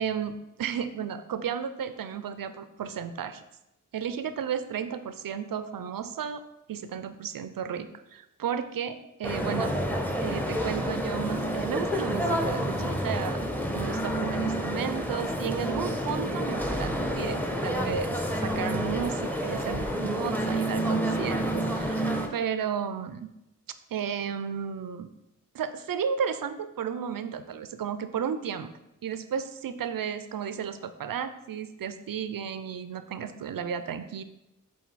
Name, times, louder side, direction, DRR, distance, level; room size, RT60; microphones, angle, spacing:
voice 1, 0.0-3.4 3.9-6.4 6.7-9.7 10.2-13.4 13.7-23.3 23.9-25.1 25.5-28.7 29.0-34.2, right 7 dB, 85° right, 11 dB, 0.5 m, -33 dB
sound 1, 9.2-22.3, equal, 5° left, 0.8 m, -29 dB
7.5 x 3.9 x 4.1 m, 0.88 s
wide cardioid pair, 70°, 33 cm